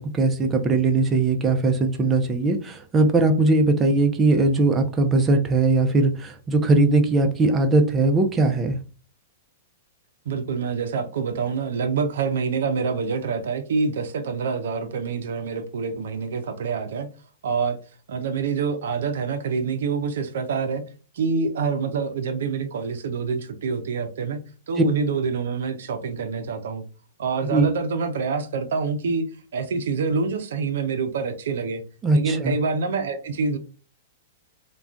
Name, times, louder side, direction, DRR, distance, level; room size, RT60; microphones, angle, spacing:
voice 1, 0.0-8.8 24.8-24.9 27.5-27.6 32.0-32.6, right 2 dB, 20° right, 0.5 m, -20 dB
voice 2, 10.3-17.1 17.4-17.8 18.1-20.8 21.1-24.4 24.7-26.8 27.2-29.3 29.5-31.8 32.1-33.6, right 5 dB, 75° right, 0.5 m, -26 dB
2.4 x 2.2 x 3.4 m
hypercardioid pair, 125°, 0 cm